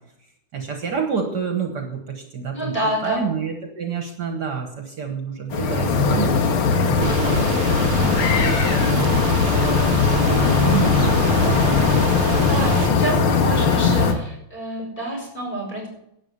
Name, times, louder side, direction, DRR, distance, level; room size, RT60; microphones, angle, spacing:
voice 1, 0.5-7.8 8.4-11.6, right 6 dB, 55° right, 3 dB, 1.8 m, -29 dB
voice 2, 2.5-3.2 12.4-15.9, right 1 dB, 25° left, -1 dB, 5.8 m, -28 dB
sound 1, 5.5-14.1, left 4 dB, 85° left, 2.2 m, -19 dB
sound 2, 7.0-12.9, right 8 dB, 75° right, 1.5 m, -31 dB
11.5 x 8.8 x 6.7 m, 0.78 s
omnidirectional pair, 2.3 m